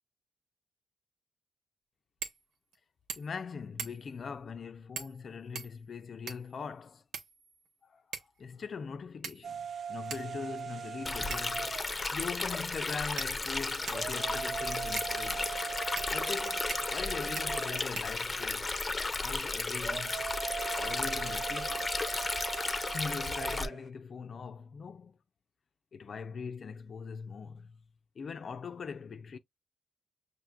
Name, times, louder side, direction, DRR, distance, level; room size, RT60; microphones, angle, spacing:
sound 1, 2.2-2.4 2.7-2.8 3.1-3.4 3.8-4.2 5.0-5.2 5.6-6.6 7.1-7.7 8.1-8.4 9.2-9.7 10.1-10.3 11.3-11.6 12.4-12.5 13.2-14.1 15.0-15.1 16.0-16.1 16.7-17.0 17.4-17.5 18.0-18.5, right 6 dB, 85° right, 0.8 m, -42 dB
voice 1, 3.2-7.0 7.8-8.0 8.4-11.9 12.1-15.4 16.1-18.9 19.2-20.2 20.8-21.9 22.9-25.2 25.9-27.8 28.2-29.4, left 5 dB, 55° left, 0.5 m, -41 dB
sound 2, 9.4-23.9, right 7 dB, 60° right, 0.4 m, -41 dB
Stream, 11.1-23.7, left 3 dB, 25° left, 0.7 m, -34 dB
5.6 x 2.8 x 2.2 m
cardioid pair, 80°, 0 cm